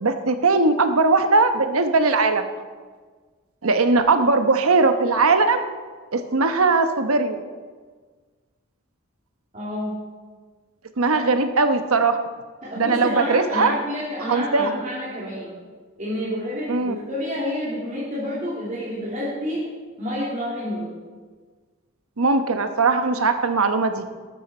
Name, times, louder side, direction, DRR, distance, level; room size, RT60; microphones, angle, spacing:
voice 1, 0.0-2.4 3.6-5.7 6.1-7.4 11.0-12.2 12.8-13.7 14.3-14.7 16.7-16.9 22.2-24.0, right 3 dB, 85° right, 8 dB, 1.0 m, -19 dB
voice 2, 9.5-9.9 11.1-11.2 12.6-15.5 16.0-19.6 20.0-21.0, equal, 35° right, -8 dB, 3.0 m, -29 dB
13.0 x 13.0 x 4.4 m, 1.5 s
head